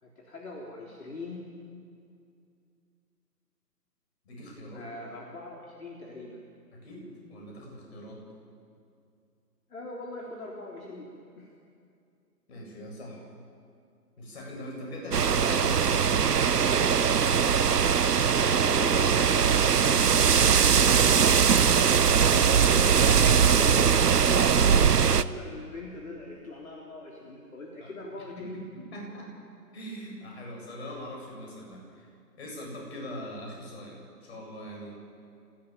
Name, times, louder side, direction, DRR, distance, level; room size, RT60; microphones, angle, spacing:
voice 1, 0.0-1.5 4.7-6.4 9.7-11.5 18.4-20.3 23.5-24.5 25.1-28.6, left 2 dB, 55° left, -1 dB, 3.7 m, -41 dB
voice 2, 4.2-4.8 6.7-8.2 12.5-13.2 14.2-16.9 21.1-21.6 22.1-23.5 27.8-27.9 28.4-29.3 29.7-32.1 32.4-34.9, equal, 40° left, -1 dB, 7.9 m, -41 dB
sound 1, 15.1-25.2, right 7 dB, 70° right, 0.9 m, -21 dB
25.0 x 17.0 x 9.0 m, 2.4 s
figure-of-eight pair, 145°, 49 cm